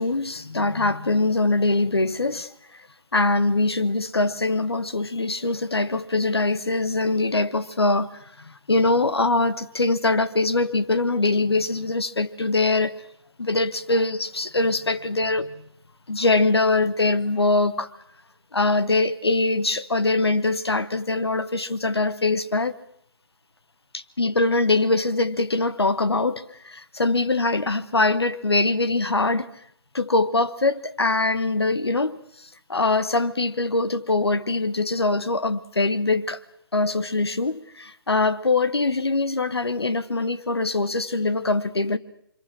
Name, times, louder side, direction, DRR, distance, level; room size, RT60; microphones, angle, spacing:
voice 1, 0.0-2.5 3.1-8.1 8.4-12.9 13.4-15.5 16.1-17.9 18.5-22.8 23.9-29.5 29.9-36.4 36.7-42.0, left 3 dB, 85° left, 1.3 m, -23 dB
29.5 x 25.5 x 6.1 m
figure-of-eight pair, 140°, 13 cm